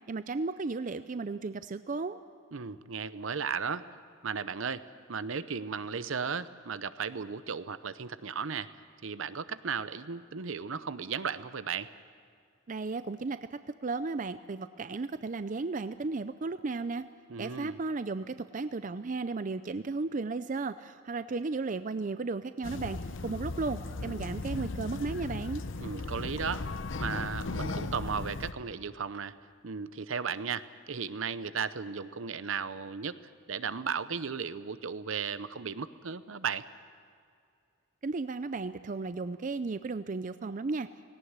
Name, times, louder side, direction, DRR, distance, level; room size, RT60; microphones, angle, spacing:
voice 1, 0.1-2.2 12.7-17.1 17.4-23.0 23.2-25.6 38.0-40.9, right 3 dB, 40° right, 12 dB, 0.5 m, -34 dB
voice 2, 2.5-3.9 4.2-4.8 5.1-8.7 9.0-11.9 17.3-17.8 25.8-26.7 27.0-29.3 29.6-33.1 33.5-36.7, right 6 dB, 70° right, 14 dB, 0.7 m, -35 dB
sound 1, 22.6-28.5, left 3 dB, 60° left, 0.8 m, -36 dB
18.0 x 18.0 x 9.5 m, 2.3 s
head